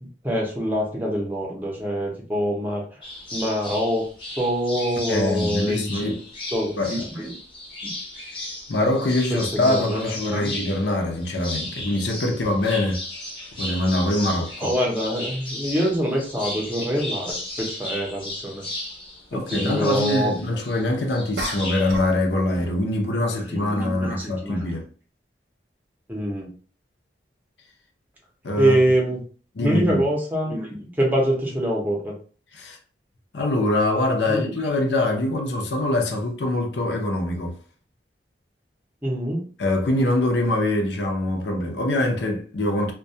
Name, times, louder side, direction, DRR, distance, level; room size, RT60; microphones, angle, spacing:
voice 1, 0.2-2.8 3.3-4.1 4.4-6.2 6.5-7.4 7.8-7.9 9.3-10.0 10.3-10.5 14.6-18.6 19.3-20.4 23.2-24.8 26.1-26.5 28.6-29.2 29.6-32.1 34.2-34.5 39.0-39.4, equal, 10° right, 0.6 m, -25 dB
sound 1, 3.0-21.9, left 1 dB, 30° left, 0.7 m, -35 dB
voice 2, 5.0-6.2 6.8-7.1 8.7-13.0 13.6-14.7 19.3-24.8 28.4-28.8 29.6-30.1 32.5-32.8 33.3-37.6 39.6-42.9, left 1 dB, 70° left, 0.5 m, -24 dB
sound 2, 17.3-17.4 21.4-22.2 22.5-22.8, right 1 dB, 70° right, 0.4 m, -33 dB
2.2 x 2.2 x 2.6 m
head